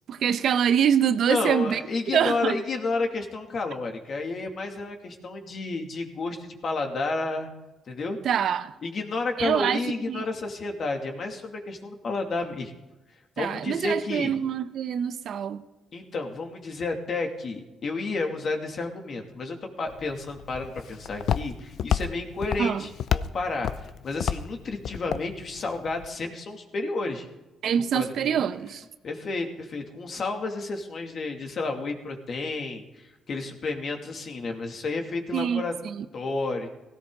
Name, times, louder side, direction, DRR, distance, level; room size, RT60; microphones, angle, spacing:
voice 1, 0.1-1.8 2.1-2.6 8.2-8.7 9.4-9.8 10.1-10.2 13.4-15.6 22.6-22.9 27.6-28.8 35.3-36.0, right 8 dB, 70° right, 0.9 m, -25 dB
voice 2, 1.3-7.5 7.9-8.2 8.8-12.7 13.4-14.3 15.9-27.3 27.9-28.4 29.0-35.7 36.1-36.7, left 3 dB, 50° left, 2.6 m, -31 dB
Walk footsteps, 19.9-26.1, left 8 dB, 70° left, 0.6 m, -31 dB
17.0 x 17.0 x 3.9 m
cardioid pair, 90°, 0 cm